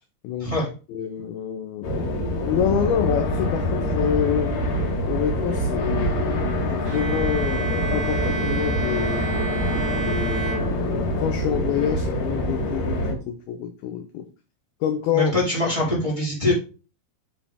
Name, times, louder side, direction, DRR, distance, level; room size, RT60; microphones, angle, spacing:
voice 1, 0.9-4.5 5.1-9.3 10.0-14.3 14.8-15.3, left 9 dB, 80° left, 6 dB, 2.2 m, -27 dB
sound 1, 1.8-13.1, left 1 dB, 60° left, 3.0 m, -25 dB
Bowed string instrument, 6.9-11.3, right 7 dB, 45° right, 2.4 m, -31 dB
voice 2, 15.1-16.5, left 1 dB, 10° right, -6 dB, 3.1 m, -23 dB
7.5 x 7.0 x 3.5 m, 0.35 s
omnidirectional pair, 5.3 m